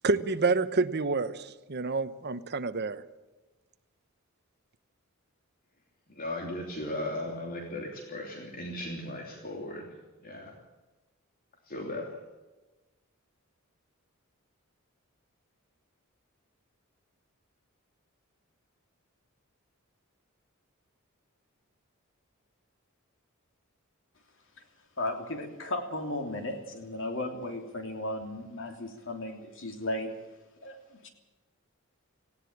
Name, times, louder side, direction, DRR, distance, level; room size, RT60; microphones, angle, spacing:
voice 1, 0.0-3.0, right 3 dB, 50° right, 11 dB, 1.0 m, -28 dB
voice 2, 6.1-9.9 10.2-10.6 11.7-12.1, left 1 dB, 45° left, 1 dB, 3.0 m, -37 dB
voice 3, 25.0-30.1 30.6-30.8 31.0-31.1, left 1 dB, 65° left, 4 dB, 3.3 m, -35 dB
18.5 x 16.5 x 8.6 m, 1.1 s
head